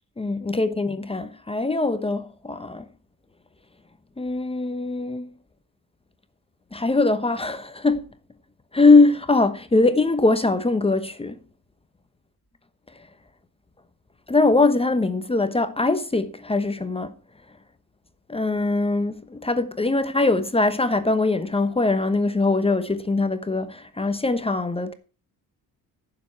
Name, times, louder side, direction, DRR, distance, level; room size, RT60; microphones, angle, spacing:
voice 1, 0.2-2.8 4.2-5.3 6.7-8.0 8.7-11.4 14.3-17.1 18.3-24.9, left 3 dB, 15° left, 1.0 m, -21 dB
16.0 x 7.1 x 4.5 m
cardioid pair, 135°, 38 cm